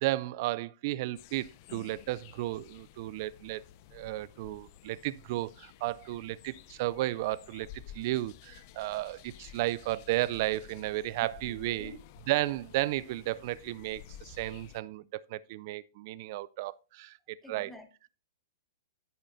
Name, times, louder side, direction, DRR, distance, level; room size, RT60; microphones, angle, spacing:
voice 1, 0.0-3.6 3.9-7.7 7.9-11.9 12.3-17.1 17.5-17.7, right 17 dB, 50° right, 0.4 m, -33 dB
sound 1, 1.2-14.8, left 11 dB, 45° left, 0.7 m, -53 dB
voice 2, 11.2-12.0 17.4-18.1, left 1 dB, 5° left, 1.3 m, -50 dB
10.0 x 8.7 x 2.6 m
hypercardioid pair, 140°, 2 cm